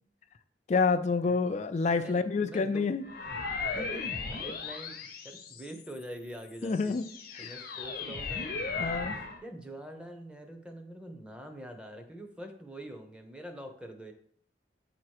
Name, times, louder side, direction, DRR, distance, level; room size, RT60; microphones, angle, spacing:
voice 1, 0.7-3.0 6.6-7.1 7.3-7.5 8.8-9.2, left 4 dB, 40° left, 9 dB, 0.3 m, -28 dB
voice 2, 1.9-3.0 3.7-7.0 7.4-8.5 9.4-14.1, right 1 dB, 5° right, 5 dB, 0.8 m, -45 dB
sound 1, 3.0-6.0 6.6-9.4, left 4 dB, 55° left, 0.8 m, -37 dB
8.3 x 2.9 x 4.7 m, 0.65 s
head